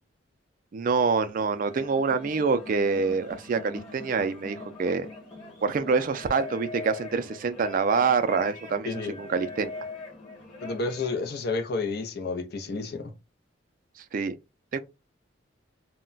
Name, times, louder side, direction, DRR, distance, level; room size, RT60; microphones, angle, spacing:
voice 1, 0.7-5.1 5.6-9.7 14.1-14.3 14.7-14.8, right 5 dB, 45° right, 0.3 m, -26 dB
sound 1, 1.3-11.2, left 3 dB, 25° left, 1.1 m, -42 dB
voice 2, 10.6-13.1, left 3 dB, 55° left, 0.5 m, -30 dB
2.2 x 2.1 x 3.8 m
head